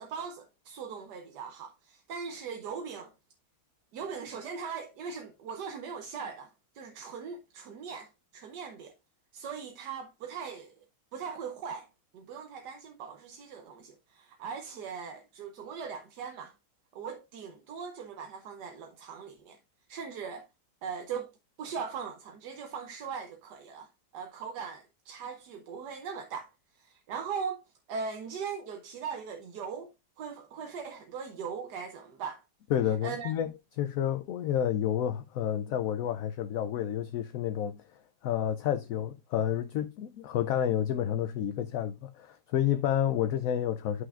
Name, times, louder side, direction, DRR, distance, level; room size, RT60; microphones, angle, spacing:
voice 1, 0.0-3.1 3.9-8.9 9.3-10.8 11.1-11.9 12.1-16.5 16.9-19.6 19.9-20.5 20.8-21.3 21.6-27.6 27.9-29.9 30.2-32.4 33.0-33.3, right 6 dB, 80° right, 1.4 m, -40 dB
voice 2, 32.7-33.5 33.8-37.8 38.2-44.0, left 10 dB, 70° left, 0.9 m, -30 dB
11.0 x 5.7 x 2.4 m
omnidirectional pair, 1.8 m